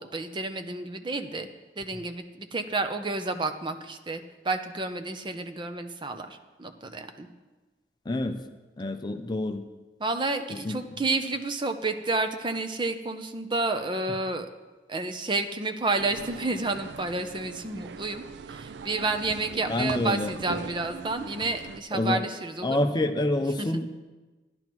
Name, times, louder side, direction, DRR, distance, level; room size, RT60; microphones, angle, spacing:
voice 1, 0.0-1.5 1.8-7.3 10.0-14.5 14.9-22.9 23.6-23.7, right 3 dB, 25° right, 7 dB, 0.6 m, -30 dB
voice 2, 8.1-8.4 8.8-9.6 10.5-11.0 19.7-20.3 21.9-22.2 22.6-23.9, left 1 dB, 25° left, 7 dB, 0.5 m, -27 dB
sound 1, 16.0-21.8, right 5 dB, 80° right, 0.4 m, -40 dB
15.0 x 10.5 x 3.0 m, 1.2 s
head